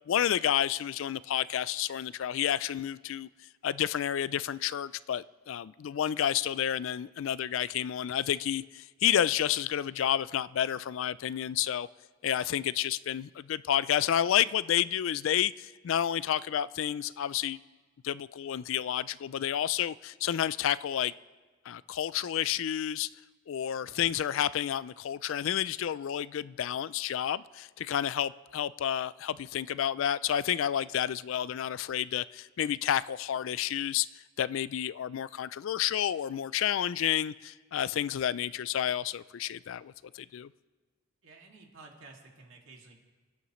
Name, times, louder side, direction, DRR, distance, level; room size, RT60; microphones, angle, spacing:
voice 1, 0.1-3.3 3.6-11.9 12.2-17.6 18.0-21.1 21.7-23.1 23.5-40.5, left 10 dB, 70° left, 0.3 m, -30 dB
voice 2, 41.2-43.0, right 3 dB, 70° right, 2.3 m, -53 dB
28.5 x 9.8 x 3.1 m
head